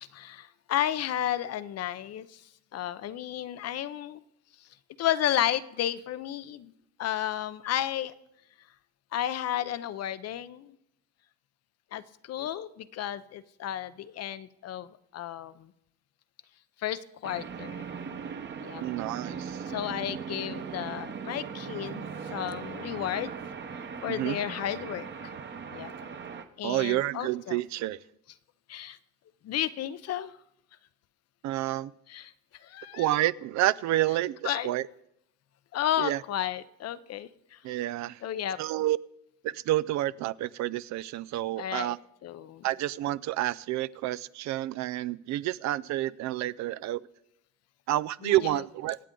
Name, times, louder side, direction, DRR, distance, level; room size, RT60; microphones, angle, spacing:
voice 1, 0.0-2.4 2.7-4.2 5.0-6.7 7.0-8.1 9.1-10.7 11.9-14.9 15.1-15.7 16.8-17.9 18.6-18.8 19.7-22.0 22.3-23.3 24.0-25.1 25.7-25.9 26.6-27.6 28.7-29.0 29.4-30.3 32.1-32.3 32.6-33.1 34.4-34.7 35.7-37.6 38.2-38.6 41.6-41.9 42.2-42.6 48.2-48.6, left 11 dB, 55° left, 14 dB, 0.7 m, -32 dB
sound 1, 17.2-26.5, right 6 dB, 35° right, 1.0 m, -39 dB
voice 2, 18.8-19.6 24.1-24.4 26.6-28.0 31.4-31.9 32.9-34.9 36.0-36.2 37.6-38.2 38.6-39.0 39.4-42.0 42.6-47.0 47.9-49.0, right 15 dB, 65° right, 17 dB, 0.5 m, -29 dB
24.5 x 8.4 x 3.8 m, 0.80 s
cardioid pair, 115°, 31 cm